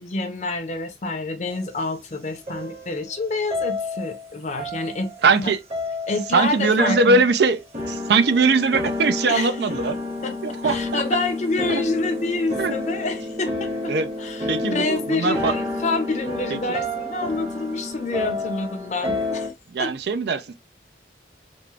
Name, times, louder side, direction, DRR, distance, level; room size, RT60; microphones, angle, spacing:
voice 1, 0.0-5.1 5.4-5.5 6.1-7.2 9.3-9.7 10.2-19.5 19.8-19.9, left 3 dB, 40° left, 0.6 m, -28 dB
sound 1, 2.5-3.2 3.5-4.3 4.6-5.3 5.7-6.5 6.8-7.3 7.7-19.5, left 2 dB, 35° right, 1.2 m, -30 dB
voice 2, 5.2-5.6 6.3-7.6 7.9-10.0 10.4-11.0 11.7-11.8 12.6-12.8 13.9-14.1 14.5-15.5 16.5-16.6 19.7-20.5, right 4 dB, 60° right, 0.4 m, -20 dB
3.5 x 2.5 x 3.1 m
head